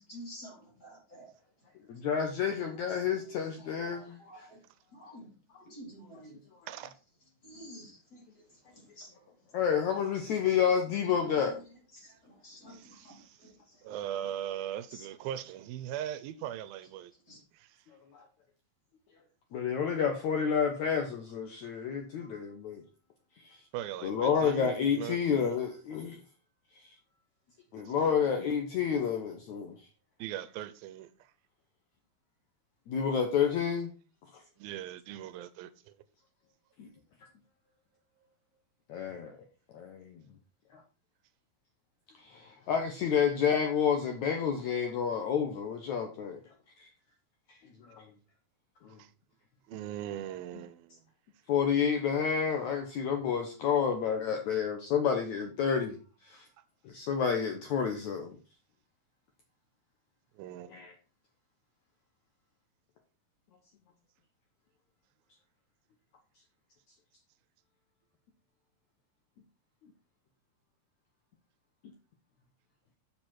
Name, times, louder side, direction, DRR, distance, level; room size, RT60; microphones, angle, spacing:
voice 1, 0.1-1.3 3.6-4.6 4.9-5.3 5.6-6.4 7.4-8.2 9.0-9.2 11.1-11.5 11.9-12.1 12.4-13.1 13.4-13.5 14.9-15.1 17.3-17.4, equal, 25° left, 4.1 m, -49 dB
voice 2, 1.9-4.5 9.5-11.6 18.1-18.3 19.5-22.8 24.0-26.2 27.7-29.8 32.9-33.9 34.3-34.4 36.8-36.9 38.9-39.3 39.7-40.2 40.7-40.8 42.2-46.4 46.8-46.9 47.9-48.1 48.8-49.0 50.5-50.6 51.5-56.0 56.2-56.5 56.9-58.4 60.7-60.9, left 7 dB, 65° left, 2.0 m, -29 dB
voice 3, 12.7-13.4 13.8-17.1 17.5-17.7 23.7-25.2 27.9-28.1 30.2-31.1 34.6-35.9 49.0-49.1 49.7-51.0 60.4-60.7, right 11 dB, 80° right, 2.4 m, -40 dB
8.1 x 7.5 x 4.4 m
omnidirectional pair, 4.2 m